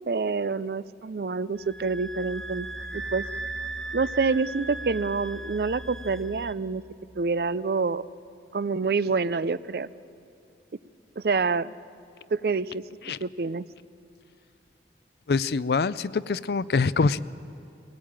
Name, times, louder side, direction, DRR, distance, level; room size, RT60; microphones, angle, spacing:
voice 1, 0.1-2.7 2.9-3.2 3.9-6.8 7.2-8.1 8.5-9.9 11.2-11.7 12.3-12.8 13.2-13.6, right 4 dB, 60° right, 17 dB, 0.4 m, -27 dB
sound 1, 1.6-6.5, right 2 dB, ahead, 0.9 m, -37 dB
voice 2, 15.3-17.2, left 4 dB, 65° left, 17 dB, 0.5 m, -24 dB
22.5 x 18.0 x 8.8 m, 2.5 s
head